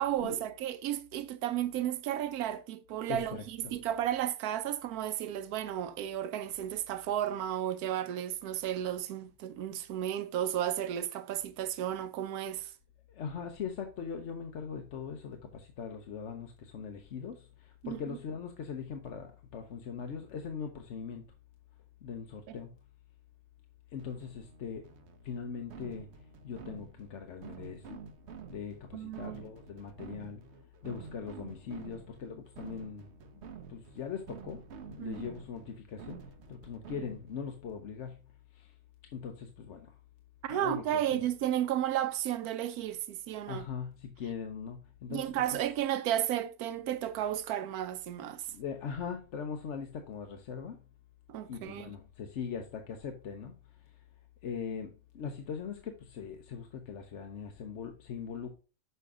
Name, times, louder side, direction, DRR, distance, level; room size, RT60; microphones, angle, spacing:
voice 1, 0.0-12.7 17.8-18.0 22.5-22.6 28.9-29.5 35.0-35.2 40.4-43.7 45.1-48.5 51.3-51.9, right 11 dB, 90° right, 1.1 m, -33 dB
voice 2, 3.1-3.7 13.1-21.2 22.0-22.7 23.9-24.8 25.2-26.1 26.4-28.0 28.5-30.4 30.8-33.1 33.4-36.2 36.5-38.2 38.5-38.7 39.1-39.9 40.5-40.8 41.1-41.2 43.5-45.3 48.5-50.8 51.5-53.6 54.4-58.5, left 6 dB, 60° left, 1.0 m, -41 dB
sound 1, 24.0-37.5, right 6 dB, 55° right, 1.0 m, -49 dB
6.7 x 5.1 x 3.6 m
omnidirectional pair, 1.5 m